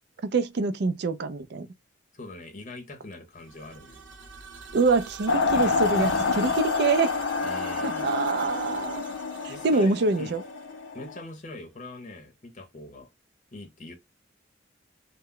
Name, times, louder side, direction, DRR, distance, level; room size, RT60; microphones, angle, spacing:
voice 1, 0.2-1.7 4.7-7.2 7.8-9.0 9.4-10.4, right 3 dB, 60° right, 0.4 m, -25 dB
voice 2, 2.1-4.0 7.4-8.1 9.5-10.4 10.9-13.1 13.5-14.0, left 2 dB, 40° left, 0.7 m, -42 dB
sound 1, 3.3-11.2, right 5 dB, 85° right, 0.9 m, -44 dB
sound 2, 5.3-11.2, left 4 dB, 85° left, 0.4 m, -28 dB
2.2 x 2.0 x 3.6 m
head